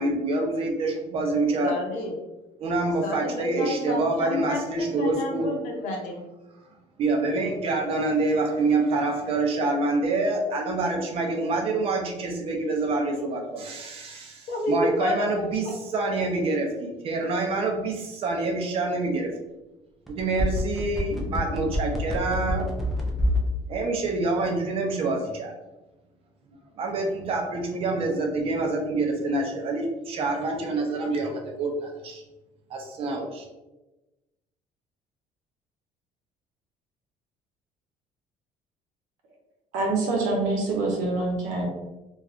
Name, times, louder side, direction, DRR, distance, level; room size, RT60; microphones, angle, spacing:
voice 1, 0.0-1.8 2.6-5.5 7.0-19.3 20.1-22.7 23.7-25.5 26.8-32.2 32.7-33.4, right 2 dB, 45° right, 2 dB, 0.6 m, -26 dB
voice 2, 1.6-2.1 3.0-6.2 14.5-15.7, left 1 dB, 70° left, 1 dB, 0.7 m, -30 dB
sound 1, 20.1-23.5 23.8-23.9, left 1 dB, ahead, 0.4 m, -27 dB
voice 3, 39.7-41.7, right 2 dB, 80° right, 0 dB, 0.8 m, -25 dB
3.1 x 2.4 x 2.5 m, 1.0 s
cardioid pair, 150°, 13 cm